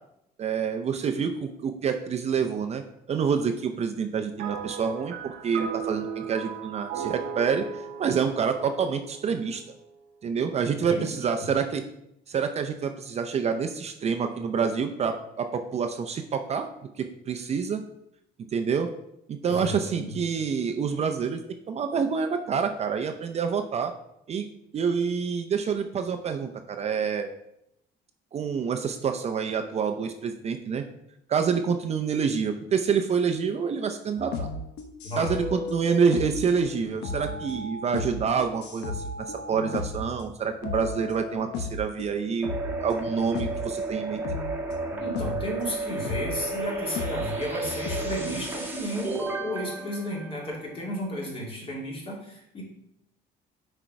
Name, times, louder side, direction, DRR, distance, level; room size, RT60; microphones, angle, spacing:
voice 1, 0.4-2.8 3.1-7.7 8.0-9.6 10.2-11.8 12.3-16.7 17.0-17.8 18.5-18.9 19.3-21.4 21.7-23.9 24.3-24.5 24.7-27.3 28.3-30.8 31.3-34.5 35.2-42.5 42.8-44.2, right 6 dB, 40° right, 6 dB, 0.5 m, -27 dB
sound 1, 4.4-9.9, right 7 dB, 90° right, 0.8 m, -36 dB
voice 2, 10.8-11.5 19.4-20.2 35.0-35.4 45.0-52.6, equal, 35° left, -3 dB, 2.6 m, -33 dB
sound 2, 34.2-40.3 40.6-42.1 42.4-43.7 44.2-45.5 46.0-48.2, left 3 dB, 80° left, 1.0 m, -35 dB
sound 3, 42.4-51.1, right 3 dB, 10° right, 1.3 m, -33 dB
6.2 x 4.4 x 4.6 m, 0.79 s
cardioid pair, 110°, 17 cm